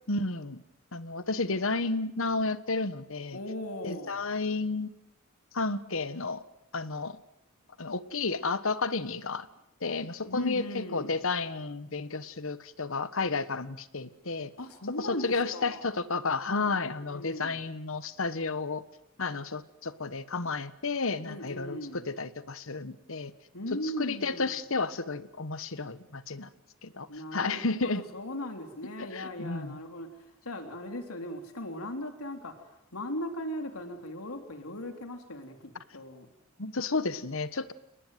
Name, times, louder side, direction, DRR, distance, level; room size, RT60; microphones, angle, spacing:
voice 1, 0.1-0.6 0.9-3.4 3.8-4.9 5.5-6.4 6.7-7.2 7.8-9.5 9.8-14.5 15.0-18.8 19.2-23.3 24.0-26.5 26.8-27.1 27.3-28.0 29.0-29.8 36.6-37.7, left 3 dB, 65° left, 14 dB, 1.4 m, -32 dB
voice 2, 3.3-4.2 10.2-11.2 14.6-15.8 16.4-17.6 21.2-22.0 23.5-24.6 27.1-30.1 30.4-36.3, left 1 dB, 90° left, 6 dB, 3.5 m, -38 dB
29.0 x 20.0 x 9.4 m, 0.82 s
head